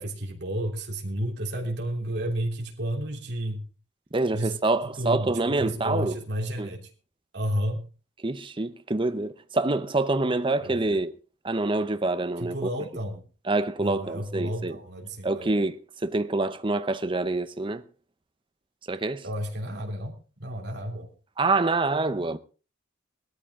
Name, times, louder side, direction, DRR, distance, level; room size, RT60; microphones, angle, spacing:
voice 1, 0.0-3.6 4.3-4.5 5.0-5.3 5.6-6.8 7.3-7.8 10.6-11.0 12.4-13.2 13.8-15.5 19.2-21.1, right 1 dB, 60° right, 3.2 m, -31 dB
voice 2, 4.1-6.2 6.6-6.7 8.2-11.1 11.4-12.7 13.5-14.8 15.2-17.8 18.9-19.2 21.4-22.4, right 2 dB, 25° right, 0.7 m, -26 dB
18.0 x 13.0 x 3.7 m
head